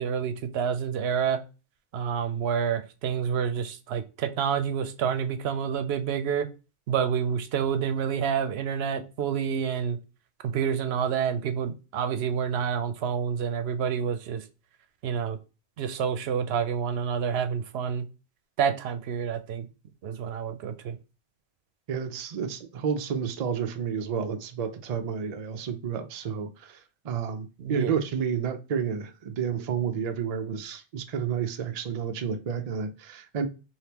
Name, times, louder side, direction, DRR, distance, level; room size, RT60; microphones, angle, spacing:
voice 1, 0.0-1.4 1.9-6.5 6.9-10.0 10.5-14.4 15.0-15.4 15.8-18.0 18.6-19.7 20.0-21.0 27.6-27.9, right 7 dB, 80° right, 0.8 m, -28 dB
voice 2, 21.9-33.5, right 7 dB, 50° right, 0.5 m, -31 dB
3.5 x 2.7 x 2.8 m
omnidirectional pair, 1.1 m